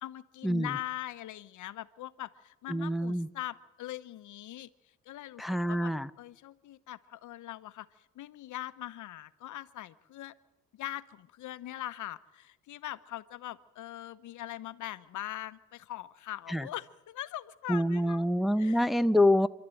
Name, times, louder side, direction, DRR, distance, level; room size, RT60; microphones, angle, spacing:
voice 1, 0.0-4.7 5.1-5.4 5.7-7.9 8.1-10.3 10.7-18.2 18.6-18.8, left 14 dB, 75° left, 1.0 m, -41 dB
voice 2, 2.7-3.3 5.4-6.1 16.5-16.7 17.7-19.5, left 1 dB, ahead, 0.7 m, -26 dB
27.5 x 12.5 x 9.1 m
cardioid pair, 90°, 30 cm